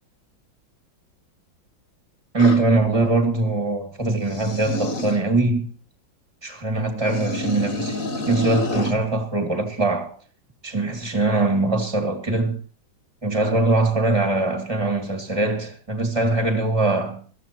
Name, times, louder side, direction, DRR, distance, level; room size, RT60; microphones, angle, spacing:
voice 1, 2.3-5.7 6.4-10.1 10.6-12.6 13.2-17.2, right 2 dB, 15° right, 1.9 m, -22 dB
sound 1, 2.4-2.6 4.2-5.2 7.0-9.0, left 2 dB, 45° left, 1.8 m, -29 dB
22.0 x 14.5 x 2.9 m
omnidirectional pair, 2.1 m